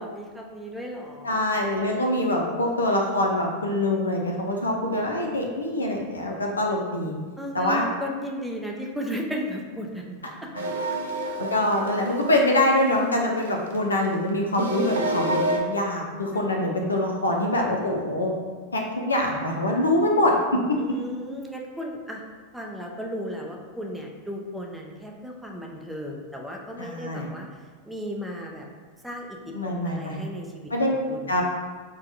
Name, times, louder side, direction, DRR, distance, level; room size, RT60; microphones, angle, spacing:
voice 1, 0.0-1.4 1.7-1.9 7.4-10.5 10.8-11.0 16.3-16.5 20.8-22.2 22.5-27.5 27.9-28.7 29.0-30.7 31.1-31.2, equal, 5° right, -1 dB, 0.5 m, -35 dB
voice 2, 1.2-7.1 7.5-7.8 11.2-18.3 18.7-20.6 26.8-27.3 29.5-30.2 30.7-30.9 31.3-31.4, left 1 dB, 85° left, 1 dB, 0.5 m, -24 dB
sound 1, 10.5-13.9 14.5-15.6, right 2 dB, 75° right, 0.4 m, -29 dB
4.6 x 2.2 x 2.6 m, 1.5 s
figure-of-eight pair, 90°, 0 cm